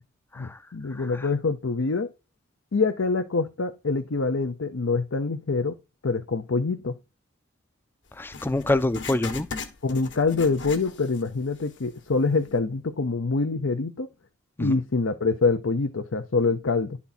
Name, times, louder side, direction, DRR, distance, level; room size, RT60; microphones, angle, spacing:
voice 1, 0.4-2.1 2.7-5.7 6.0-7.0 9.8-14.1 14.6-17.0, left 4 dB, 85° left, 0.7 m, -25 dB
voice 2, 8.2-9.5 14.6-14.8, left 2 dB, 10° left, 0.4 m, -26 dB
Writing, 8.3-11.3 11.6-11.7 12.4-12.5, left 5 dB, 60° left, 1.3 m, -38 dB
11.5 x 4.2 x 4.1 m
head